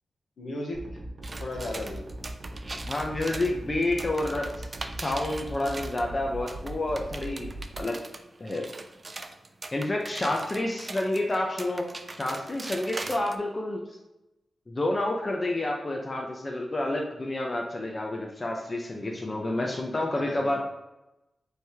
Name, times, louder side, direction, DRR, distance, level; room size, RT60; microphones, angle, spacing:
voice 1, 0.4-2.0 3.2-3.3 19.2-19.8 20.1-20.6, left 1 dB, 70° left, -1 dB, 1.1 m, -37 dB
sound 1, 0.7-7.8, right 1 dB, 50° right, 0.9 m, -40 dB
sound 2, 1.2-6.1 6.5-13.4, right 2 dB, 30° right, 0.4 m, -41 dB
voice 2, 2.9-4.7 5.0-7.5 7.8-8.0 8.4-8.7 9.7-11.9 12.2-13.8 14.7-20.6, left 1 dB, 25° left, 0 dB, 0.6 m, -29 dB
3.4 x 3.2 x 4.4 m, 0.96 s
wide cardioid pair, 125°, 0 cm